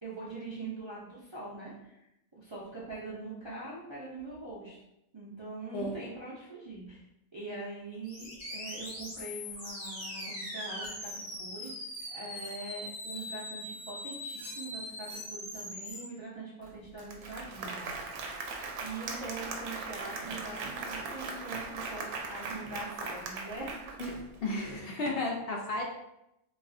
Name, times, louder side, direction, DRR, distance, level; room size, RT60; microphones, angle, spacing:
voice 1, 0.0-2.1 2.3-4.8 5.1-7.1 7.3-11.8 12.1-17.8 18.8-22.0 22.3-23.8, right 3 dB, 35° right, -8 dB, 0.4 m, -43 dB
sound 1, 8.0-16.0, left 1 dB, 80° left, 2.0 m, -41 dB
Applause, 16.6-16.7 17.0-24.5, right 4 dB, 85° right, 1.0 m, -39 dB
voice 2, 24.0-25.8, left 2 dB, 65° left, 0 dB, 0.5 m, -34 dB
4.0 x 2.4 x 2.6 m, 0.85 s
omnidirectional pair, 1.5 m